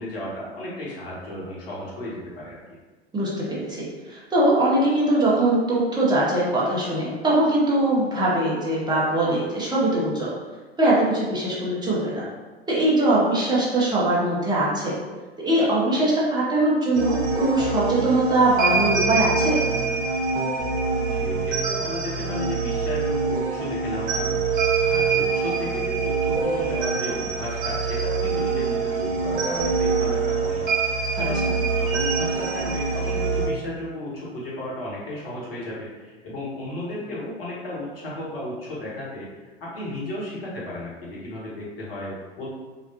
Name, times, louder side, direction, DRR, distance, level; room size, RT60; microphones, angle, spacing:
voice 1, 0.0-2.6 21.1-31.4 31.7-42.5, left 1 dB, 60° left, -6 dB, 1.4 m, -34 dB
voice 2, 3.1-10.3 10.8-12.2 12.7-15.0 15.4-19.6 31.2-31.5, right 1 dB, 15° right, -6 dB, 1.0 m, -22 dB
sound 1, 16.9-33.5, right 4 dB, 50° right, 0.8 m, -25 dB
4.0 x 2.3 x 2.9 m, 1.3 s
figure-of-eight pair, 85°, 32 cm